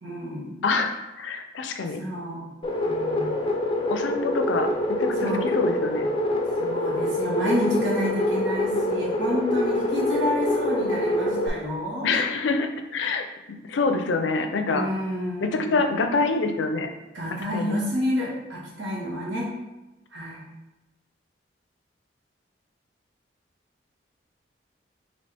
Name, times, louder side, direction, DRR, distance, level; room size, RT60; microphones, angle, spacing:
voice 1, 0.0-0.6 2.0-2.5 2.8-3.4 5.2-5.4 6.6-12.1 14.7-15.9 17.1-19.5 20.1-20.4, left 1 dB, 90° right, -4 dB, 1.4 m, -29 dB
voice 2, 0.6-2.0 3.9-6.1 12.0-14.9 15.4-16.9 17.5-17.8, left 3 dB, 90° left, 6 dB, 0.4 m, -26 dB
sound 1, 2.6-11.5, left 1 dB, 30° left, 0.4 m, -25 dB
4.1 x 2.8 x 3.4 m, 0.99 s
head